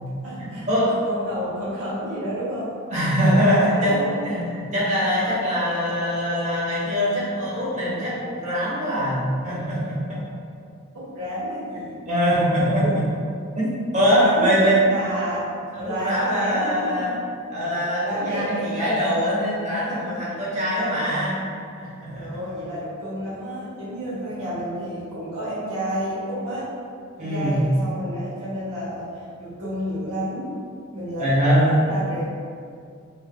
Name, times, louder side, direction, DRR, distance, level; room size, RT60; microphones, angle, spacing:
voice 1, 0.2-0.7 1.0-2.8 3.2-4.4 10.9-12.0 12.4-12.9 14.0-15.4 15.7-17.1 18.0-18.7 22.1-26.7 27.2-30.5 30.9-32.2, right 1 dB, 80° right, -10 dB, 1.4 m, -30 dB
voice 2, 2.9-10.2 12.1-13.0 13.6-14.8 15.7-17.2 17.5-21.4 21.8-22.3 27.2-27.7 31.2-31.8, equal, 35° right, -9 dB, 1.0 m, -22 dB
3.5 x 2.5 x 2.5 m, 2.3 s
head